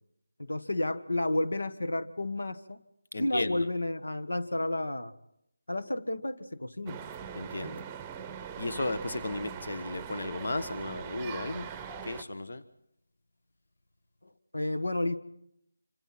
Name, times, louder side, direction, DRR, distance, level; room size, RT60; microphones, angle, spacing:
voice 1, 0.4-2.8 3.2-5.1 5.7-7.0 14.2-15.2, left 1 dB, 90° left, 10 dB, 1.4 m, -31 dB
voice 2, 3.1-3.6 7.3-7.8 8.6-11.7 12.0-12.6, left 2 dB, 65° left, 13 dB, 1.2 m, -34 dB
sound 1, 6.9-12.2, right 8 dB, 10° right, 0.8 m, -41 dB
26.5 x 26.0 x 4.3 m, 0.77 s
figure-of-eight pair, 165°, 0 cm